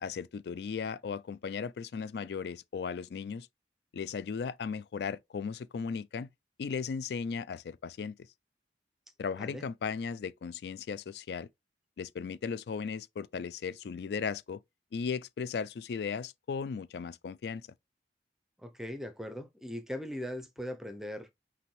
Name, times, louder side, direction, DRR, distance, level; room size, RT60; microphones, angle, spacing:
voice 1, 0.0-3.5 3.9-6.3 6.6-8.1 9.2-11.5 12.0-14.6 14.9-17.7, left 6 dB, 65° left, 0.3 m, -36 dB
voice 2, 18.6-21.3, equal, 5° right, 0.5 m, -39 dB
5.6 x 2.6 x 3.1 m
head